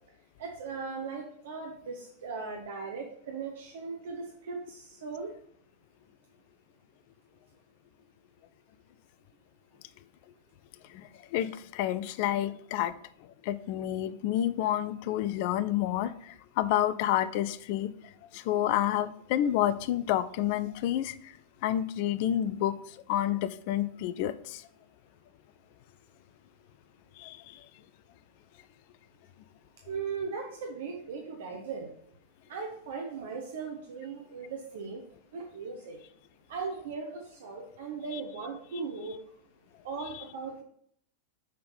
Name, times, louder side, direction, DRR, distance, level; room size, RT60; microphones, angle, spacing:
voice 1, 0.4-5.3 29.9-31.9 32.5-35.0 35.3-36.0 36.5-39.2 39.8-40.6, right 5 dB, 55° right, 1 dB, 1.1 m, -38 dB
voice 2, 10.9-12.9 13.4-17.9 18.3-21.2 21.6-22.7 23.1-24.6 27.2-27.6 38.1-38.2 40.1-40.2, left 12 dB, 45° left, 14 dB, 0.4 m, -29 dB
6.5 x 3.7 x 5.5 m, 0.65 s
figure-of-eight pair, 90°, 0 cm